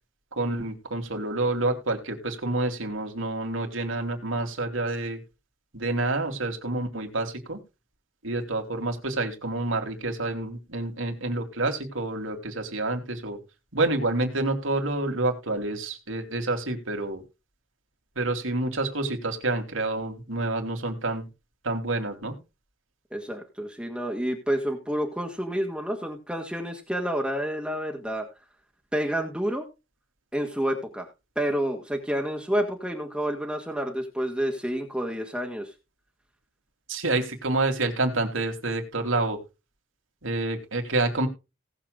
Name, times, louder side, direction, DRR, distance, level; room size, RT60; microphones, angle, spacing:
voice 1, 0.4-5.2 5.7-7.6 8.2-13.4 13.7-17.2 18.2-21.2 21.6-22.4 36.9-39.4 40.2-41.3, right 2 dB, 75° right, 5 dB, 3.2 m, -28 dB
voice 2, 23.1-28.3 28.9-29.7 30.3-31.1 31.4-35.7, equal, 5° right, 1 dB, 1.8 m, -29 dB
19.0 x 7.5 x 2.4 m, 0.27 s
head